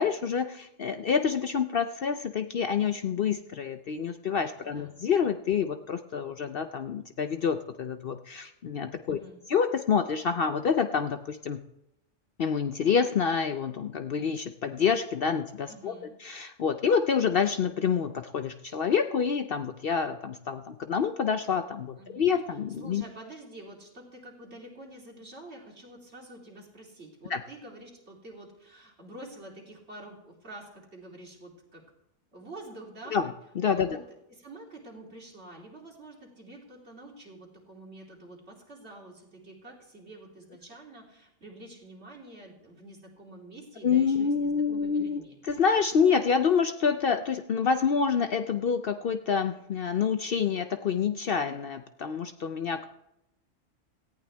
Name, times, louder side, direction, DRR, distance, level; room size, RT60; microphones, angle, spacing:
voice 1, 0.0-9.2 9.5-11.6 12.4-15.9 16.2-23.0 27.3-27.4 33.1-34.0 43.8-45.2 45.5-52.9, left 6 dB, 55° left, 8 dB, 0.7 m, -27 dB
voice 2, 4.6-4.9 9.1-9.4 15.7-16.1 22.0-22.3 22.8-31.8 32.3-33.2 33.7-34.0 34.3-45.3, right 1 dB, 55° right, -1 dB, 3.3 m, -47 dB
18.0 x 14.5 x 3.4 m, 0.84 s
omnidirectional pair, 1.3 m